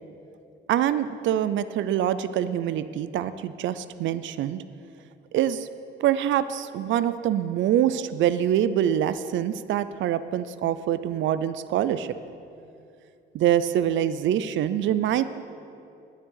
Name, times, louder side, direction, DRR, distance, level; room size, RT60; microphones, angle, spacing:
voice 1, 0.7-4.6 5.3-5.7 6.0-12.2 13.3-15.2, right 10 dB, 70° right, 13 dB, 0.5 m, -25 dB
9.8 x 7.4 x 8.0 m, 2.6 s
cardioid pair, 90°, 20 cm